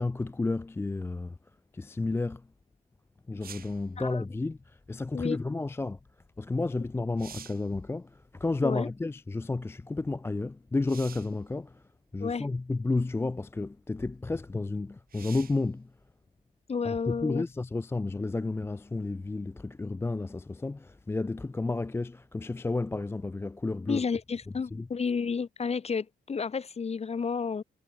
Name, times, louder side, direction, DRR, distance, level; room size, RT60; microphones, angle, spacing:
voice 1, 0.0-1.4 1.7-2.5 3.3-6.0 6.4-11.8 12.1-15.9 16.8-24.0 24.7-24.9, left 3 dB, 10° left, 0.4 m, -32 dB
sound 1, 3.4-3.9 6.5-6.6 7.0-7.7 10.8-11.4 12.4-12.5 15.1-15.7 19.3-19.4, right 9 dB, 45° right, 0.8 m, -47 dB
voice 2, 16.7-17.4 23.9-27.6, left 5 dB, 30° left, 1.3 m, -31 dB
cardioid pair, 90°, 20 cm